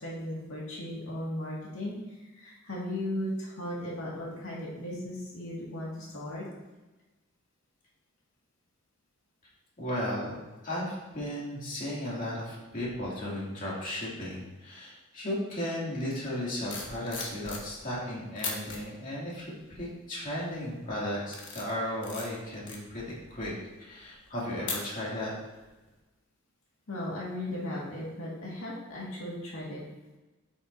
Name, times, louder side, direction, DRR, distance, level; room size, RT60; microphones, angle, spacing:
voice 1, 0.0-2.0 2.4-6.5 26.9-29.9, left 1 dB, 85° left, -5 dB, 2.0 m, -36 dB
voice 2, 9.8-23.0 23.3-23.5 23.8-25.3, left 1 dB, 40° left, -6 dB, 2.5 m, -35 dB
sound 1, 16.4-18.0 18.4-18.8 19.4-19.8 20.3-20.6 21.1-25.3 25.6-25.9, left 4 dB, 60° left, 1.4 m, -40 dB
8.5 x 7.5 x 2.7 m, 1.1 s
head